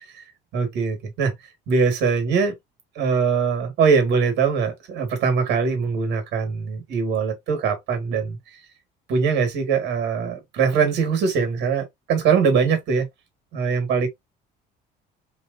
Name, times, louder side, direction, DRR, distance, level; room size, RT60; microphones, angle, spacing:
voice 1, 0.5-1.3 1.7-2.5 3.0-8.4 9.1-13.1 13.5-14.1, right 5 dB, 60° right, 2.0 m, -22 dB
4.8 x 3.2 x 2.5 m
cardioid pair, 160°, 20 cm